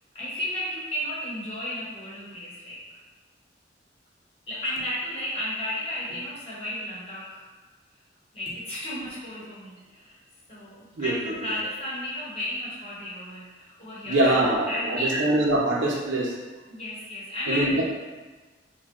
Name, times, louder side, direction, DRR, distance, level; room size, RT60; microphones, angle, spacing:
voice 1, 0.1-3.0 4.5-7.4 8.3-10.2 10.5-15.3 16.7-17.8, left 1 dB, 30° left, -8 dB, 0.9 m, -33 dB
voice 2, 11.0-11.3 14.1-16.4 17.5-17.8, right 1 dB, 90° right, -2 dB, 0.6 m, -23 dB
2.6 x 2.2 x 3.5 m, 1.3 s
head